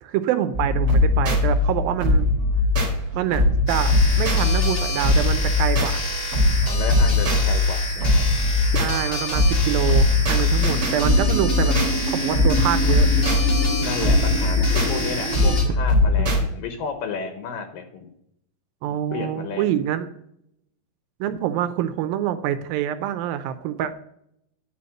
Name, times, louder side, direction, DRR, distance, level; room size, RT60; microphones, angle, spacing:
voice 1, 0.0-2.3 3.1-6.1 8.8-11.8 12.1-13.1 16.2-16.5 18.8-20.1 21.2-23.9, right 11 dB, 80° right, 11 dB, 2.3 m, -26 dB
sound 1, 0.5-16.4, left 2 dB, 35° right, 2.0 m, -20 dB
sound 2, 3.7-15.6, left 2 dB, 45° left, 0.7 m, -30 dB
voice 2, 6.6-8.2 13.8-18.1 18.9-19.7, left 6 dB, 75° left, 6 dB, 2.6 m, -32 dB
sound 3, 10.6-15.6, right 1 dB, 5° left, 1.3 m, -29 dB
10.5 x 4.1 x 7.6 m, 0.75 s
omnidirectional pair, 4.2 m